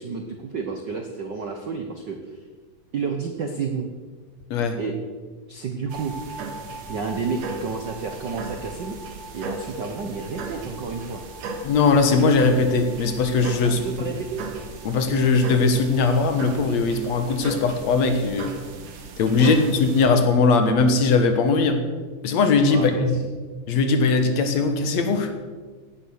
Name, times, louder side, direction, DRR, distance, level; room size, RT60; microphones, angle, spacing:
voice 1, 0.0-2.4 2.9-3.9 4.7-4.9 5.5-6.1 6.9-8.9 9.3-11.2 13.6-14.4 19.4-19.6 22.7-23.1, right 5 dB, 70° right, 5 dB, 1.0 m, -30 dB
sound 1, 5.9-20.1, right 3 dB, 90° right, 3.3 m, -36 dB
voice 2, 11.6-13.8 14.8-18.5 19.2-21.9 22.2-23.1 23.7-25.4, left 4 dB, 65° left, 7 dB, 2.3 m, -20 dB
16.0 x 9.8 x 6.5 m, 1.4 s
omnidirectional pair, 3.6 m